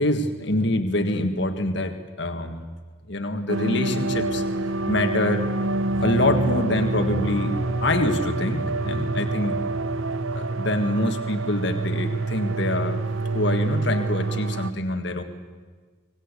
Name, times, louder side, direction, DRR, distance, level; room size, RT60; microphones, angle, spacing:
voice 1, 0.0-2.7 3.1-4.4 4.9-5.4 6.0-7.5 7.8-9.5 10.3-13.0 13.3-15.2, left 1 dB, 55° left, 6 dB, 1.7 m, -25 dB
sound 1, 3.5-14.7, right 2 dB, 75° right, 0.8 m, -26 dB
sound 2, 4.1-10.3, left 1 dB, 80° left, 2.6 m, -38 dB
25.0 x 19.0 x 8.4 m, 1.5 s
head